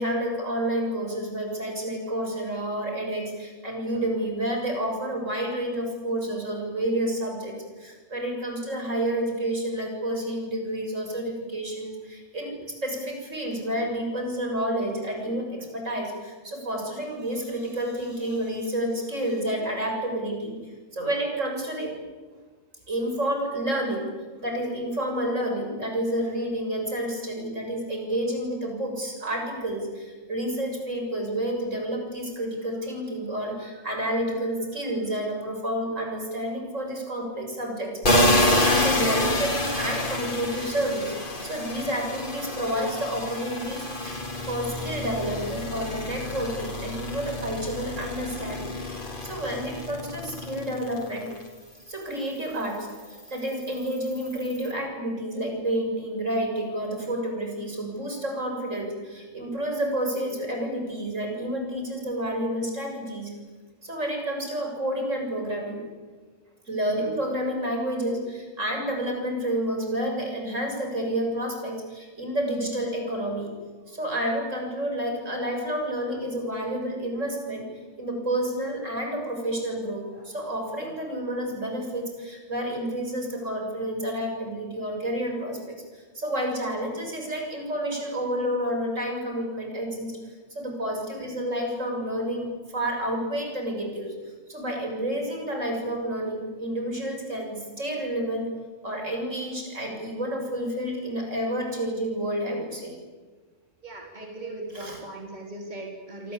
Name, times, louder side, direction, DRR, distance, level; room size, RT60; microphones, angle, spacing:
voice 1, 0.0-21.9 22.9-24.1 24.4-44.2 44.5-51.3 51.9-63.3 63.8-65.8 66.7-73.5 73.9-77.7 78.0-90.2 90.5-94.1 94.5-98.5 98.8-103.0 104.7-105.0, right 1 dB, 75° right, 2 dB, 7.4 m, -30 dB
sound 1, 38.0-51.4 51.8-54.7, left 1 dB, 40° left, 3.4 m, -28 dB
voice 2, 103.8-106.3, right 2 dB, 35° right, 1 dB, 4.0 m, -38 dB
26.0 x 26.0 x 8.5 m, 1.3 s
omnidirectional pair, 1.3 m